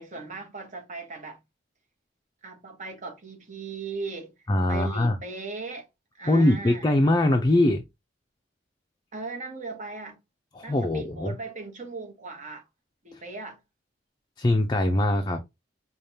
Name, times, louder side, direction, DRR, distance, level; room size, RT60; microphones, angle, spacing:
voice 1, 0.0-1.4 2.4-5.9 6.2-6.9 9.1-10.2 10.6-12.6 13.0-13.6, right 3 dB, 40° right, 1.2 m, -38 dB
voice 2, 4.5-5.1 6.3-7.8 10.6-11.4 13.1-13.2 14.4-15.4, left 1 dB, 25° left, 0.5 m, -22 dB
5.0 x 2.4 x 2.8 m
head